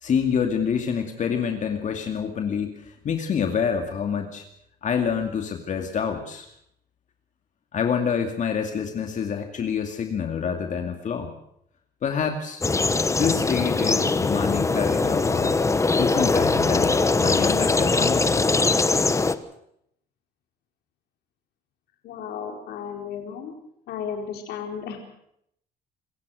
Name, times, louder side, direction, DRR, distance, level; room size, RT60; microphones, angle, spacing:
voice 1, 0.0-4.4 4.8-6.5 7.7-11.3 12.0-12.6 13.1-15.6 16.0-18.5, left 7 dB, 45° left, 5 dB, 2.4 m, -27 dB
sound 1, 12.6-19.3, left 3 dB, 15° left, 1.2 m, -21 dB
voice 2, 22.0-23.5 23.9-25.0, left 7 dB, 75° left, 3 dB, 4.4 m, -34 dB
26.5 x 15.5 x 6.5 m, 0.73 s
cardioid pair, 110°, 17 cm